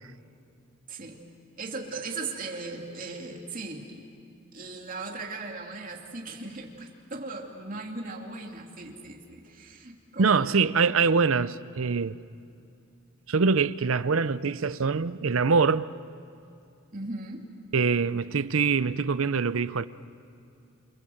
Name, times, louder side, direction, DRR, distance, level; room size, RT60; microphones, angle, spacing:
voice 1, 0.9-1.2 1.6-4.0 4.5-10.7 16.9-17.5, right 3 dB, 40° right, 2.8 m, -38 dB
voice 2, 10.2-12.2 13.3-15.9 17.7-19.9, right 5 dB, 70° right, 0.6 m, -24 dB
27.5 x 26.5 x 7.9 m
head